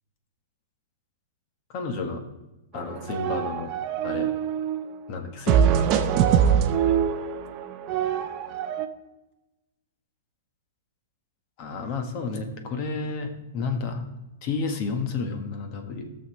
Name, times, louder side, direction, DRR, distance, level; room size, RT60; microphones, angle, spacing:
voice 1, 1.7-2.2 2.7-3.7 4.0-4.3 5.1-6.2 11.6-14.0 14.4-16.1, left 4 dB, 35° left, 6 dB, 1.4 m, -31 dB
sound 1, 2.8-4.9 5.5-8.9, right 8 dB, 35° right, 0.7 m, -23 dB
16.5 x 6.6 x 3.2 m, 1.0 s
hypercardioid pair, 155°, 0 cm